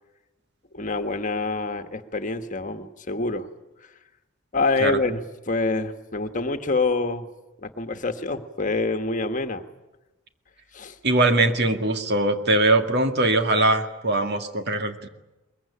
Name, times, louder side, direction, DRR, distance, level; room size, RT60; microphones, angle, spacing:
voice 1, 0.7-3.5 3.8-3.9 4.5-7.3 7.6-9.6 10.7-11.0, left 3 dB, 40° left, 8 dB, 1.5 m, -26 dB
voice 2, 11.0-15.1, right 2 dB, 55° right, 6 dB, 2.3 m, -21 dB
22.5 x 22.0 x 10.0 m, 1.0 s
head